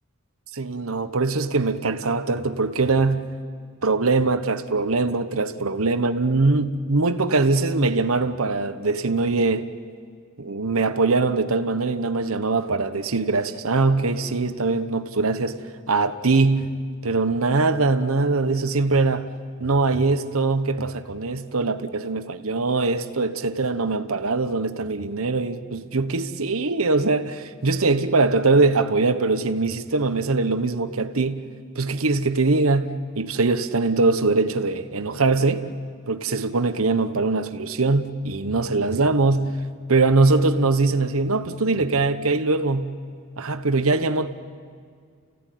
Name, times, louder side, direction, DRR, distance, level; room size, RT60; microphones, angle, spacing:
voice 1, 0.5-3.3 3.8-9.7 10.4-15.6 15.9-16.7 17.0-19.3 19.6-31.5 31.8-35.7 36.1-39.5 39.9-43.0 43.4-44.3, right 3 dB, 75° right, 1.1 m, -22 dB
30.0 x 16.0 x 9.3 m
head